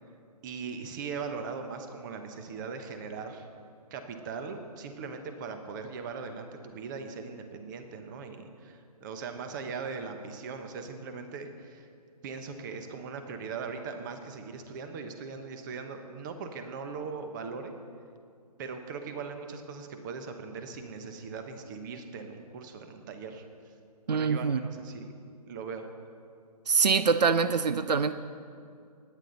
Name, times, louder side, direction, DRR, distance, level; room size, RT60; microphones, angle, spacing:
voice 1, 0.4-3.5 3.9-11.9 12.2-17.7 18.6-23.4 24.1-25.1 25.5-25.9, right 5 dB, 30° right, 7 dB, 1.0 m, -39 dB
voice 2, 24.1-24.6 26.7-28.1, right 5 dB, 85° right, 12 dB, 0.6 m, -24 dB
18.0 x 9.6 x 4.0 m, 2.3 s
hypercardioid pair, 150°, 20 cm